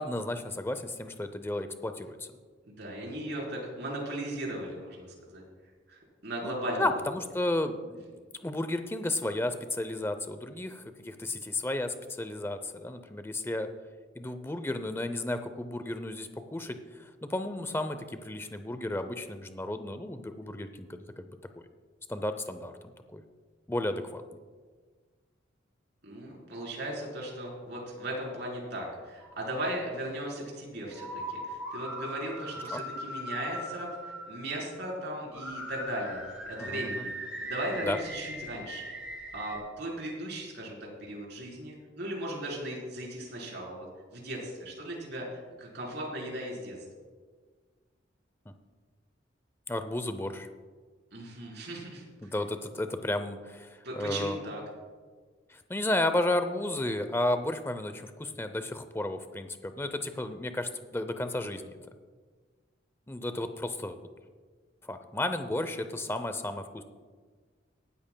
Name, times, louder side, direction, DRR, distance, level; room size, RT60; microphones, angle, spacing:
voice 1, 0.0-2.3 6.4-13.7 14.2-21.7 22.1-22.7 23.1-23.2 23.7-24.2 32.7-32.8 36.6-37.1 37.8-38.0 49.7-50.5 52.2-54.4 55.5-61.8 63.1-64.0 64.8-66.8, left 1 dB, 10° left, 9 dB, 0.6 m, -33 dB
voice 2, 2.7-5.4 5.9-7.0 26.0-33.9 34.3-38.8 39.3-43.9 44.1-46.8 51.1-52.0 53.8-54.6, right 1 dB, 60° right, -3 dB, 4.0 m, -37 dB
sound 1, 29.2-30.0 30.9-34.9 35.3-39.6, equal, 5° right, 2.7 m, -40 dB
18.0 x 12.5 x 2.3 m, 1.5 s
head